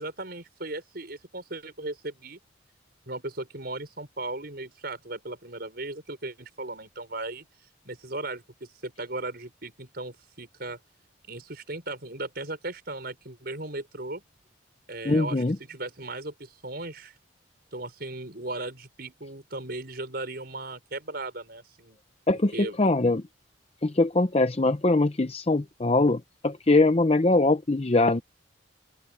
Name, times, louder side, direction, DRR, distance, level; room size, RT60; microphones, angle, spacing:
voice 1, 0.0-2.4 3.1-7.5 7.8-10.8 11.3-14.2 14.9-17.1 17.7-22.0 22.5-22.8, right 2 dB, 50° right, 6.0 m, -37 dB
voice 2, 15.0-15.6 22.3-23.2 23.8-28.2, left 2 dB, 30° left, 0.6 m, -22 dB
open air
head